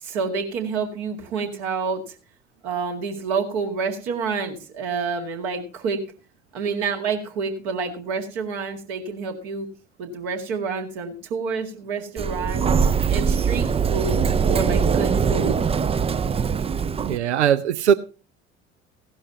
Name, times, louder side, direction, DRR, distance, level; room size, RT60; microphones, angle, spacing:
voice 1, 0.0-2.2 2.6-6.0 6.5-9.7 10.0-12.6 13.1-15.7, right 5 dB, 65° right, 2.2 m, -28 dB
Sliding door, 12.2-17.2, right 6 dB, 20° right, 0.5 m, -22 dB
voice 2, 17.0-17.9, right 9 dB, 80° right, 0.5 m, -19 dB
16.5 x 12.0 x 2.8 m
figure-of-eight pair, 55°, 34 cm